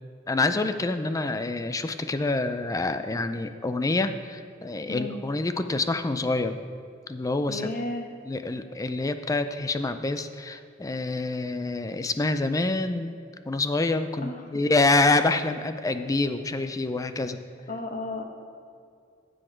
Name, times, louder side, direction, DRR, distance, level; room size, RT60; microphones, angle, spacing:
voice 1, 0.3-6.6 7.1-7.7 8.3-13.2 13.5-17.4, left 2 dB, 15° left, 9 dB, 0.4 m, -26 dB
voice 2, 4.9-5.2 7.5-8.1 14.2-14.5 17.7-18.2, left 2 dB, 45° left, 4 dB, 1.0 m, -33 dB
14.5 x 6.4 x 4.5 m, 2.3 s
head